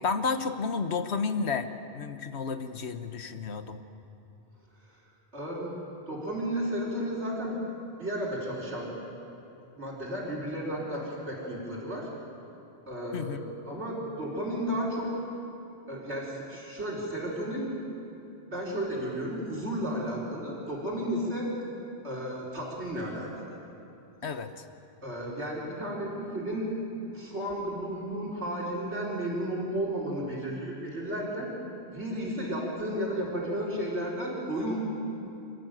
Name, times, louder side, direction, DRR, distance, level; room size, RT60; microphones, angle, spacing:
voice 1, 0.0-1.7 1.9-3.8 13.1-13.5 24.2-24.6, left 5 dB, 80° left, 8 dB, 1.4 m, -31 dB
voice 2, 5.3-5.7 6.1-7.6 8.0-8.9 9.7-12.1 12.9-13.4 13.6-15.1 15.9-17.7 18.5-21.5 22.0-23.4 25.0-26.7 27.1-31.5 31.9-34.8, equal, 90° right, -4 dB, 5.1 m, -33 dB
28.0 x 14.5 x 9.2 m, 2.8 s
omnidirectional pair, 1.1 m